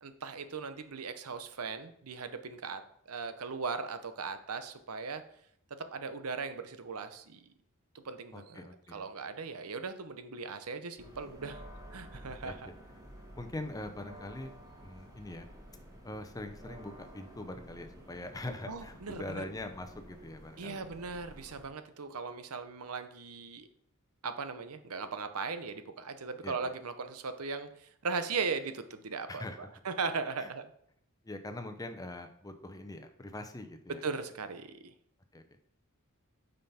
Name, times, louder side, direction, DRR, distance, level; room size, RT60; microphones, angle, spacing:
voice 1, 0.0-5.2 5.7-7.5 7.9-11.6 11.9-12.7 18.7-19.4 20.6-23.7 24.2-30.7 34.0-34.9, right 4 dB, 90° right, 10 dB, 0.8 m, -38 dB
voice 2, 8.3-9.0 12.3-12.5 13.4-14.5 14.8-15.5 16.0-20.8 26.4-26.6 29.3-29.6 30.4-30.5 31.2-34.0 35.3-35.4, left 1 dB, 15° left, 7 dB, 0.7 m, -42 dB
sound 1, 11.0-21.7, equal, 15° right, 1.8 m, -52 dB
9.1 x 5.5 x 4.3 m, 0.68 s
head